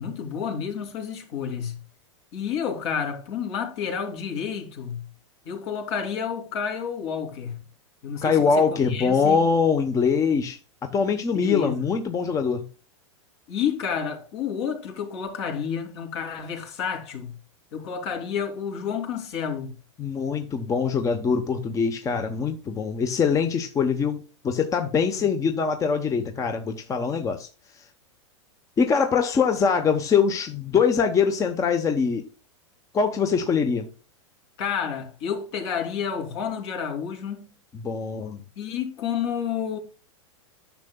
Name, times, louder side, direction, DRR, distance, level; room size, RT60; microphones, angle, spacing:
voice 1, 0.0-1.8 2.3-5.0 5.4-7.6 8.0-9.4 11.3-11.9 13.5-17.3 17.7-19.7 34.6-37.5 38.6-39.8, left 7 dB, 60° left, 2.9 m, -30 dB
voice 2, 8.2-12.6 20.0-27.5 28.8-32.2 32.9-33.9 37.8-38.4, left 5 dB, 20° left, 0.9 m, -23 dB
10.5 x 6.7 x 2.3 m
hypercardioid pair, 125°, 16 cm